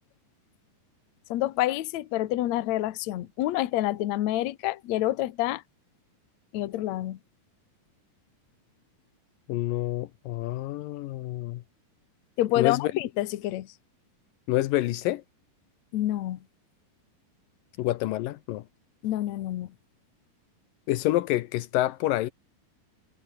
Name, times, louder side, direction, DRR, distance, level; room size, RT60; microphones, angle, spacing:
voice 1, 1.3-5.6 6.5-7.2 12.4-13.7 15.9-16.4 19.0-19.7, left 15 dB, 65° left, 2.1 m, -28 dB
voice 2, 9.5-11.6 12.6-12.9 14.5-15.2 17.8-18.6 20.9-22.3, left 16 dB, 80° left, 2.4 m, -27 dB
omnidirectional pair, 4.1 m